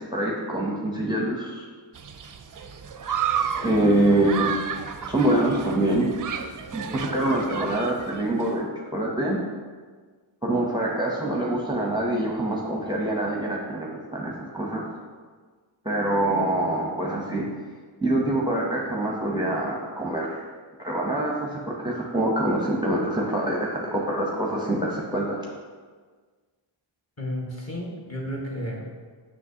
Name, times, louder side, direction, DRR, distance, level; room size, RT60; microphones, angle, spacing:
voice 1, 0.0-1.7 3.5-4.6 5.1-6.1 6.7-9.4 10.4-14.9 15.8-17.5 18.0-20.4 20.8-25.4, right 1 dB, 10° right, -3 dB, 0.7 m, -25 dB
Human group actions, 1.9-8.5, right 8 dB, 45° right, 0.4 m, -32 dB
voice 2, 27.2-29.0, equal, 30° left, -3 dB, 1.4 m, -32 dB
7.3 x 6.2 x 2.8 m, 1.5 s
wide cardioid pair, 100°, 47 cm